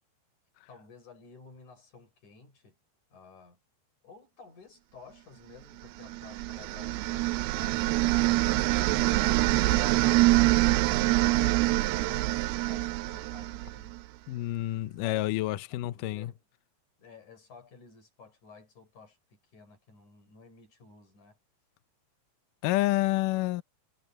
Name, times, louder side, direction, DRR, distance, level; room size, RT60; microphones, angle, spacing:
voice 1, 0.7-2.8 3.1-3.6 4.0-14.0 15.0-16.4 17.0-21.4, left 4 dB, 45° left, 6.8 m, -53 dB
sound 1, 6.0-14.0, right 19 dB, 80° right, 2.4 m, -25 dB
voice 2, 14.3-16.3 22.6-23.6, left 17 dB, 85° left, 1.9 m, -28 dB
omnidirectional pair, 4.8 m